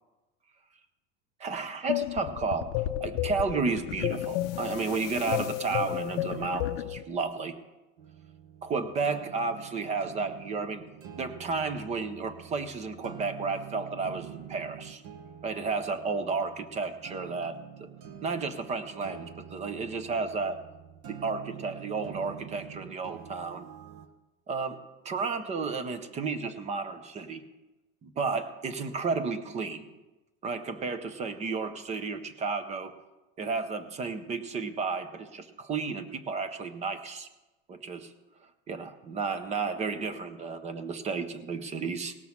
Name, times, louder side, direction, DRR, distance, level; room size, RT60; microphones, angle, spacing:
voice 1, 1.4-2.7 3.0-7.5 8.6-10.8 11.2-15.0 15.4-17.9 18.2-20.6 21.1-23.7 24.5-24.8 25.0-27.4 28.0-29.8 30.4-32.9 33.4-37.3 37.7-38.1 38.7-42.1, right 4 dB, 15° right, 11 dB, 0.5 m, -32 dB
sound 1, 1.9-7.0, left 14 dB, 50° left, 0.6 m, -32 dB
sound 2, 8.0-24.1, right 9 dB, 50° right, 1.0 m, -47 dB
18.0 x 6.1 x 7.1 m, 1.1 s
supercardioid pair, 165°, 41 cm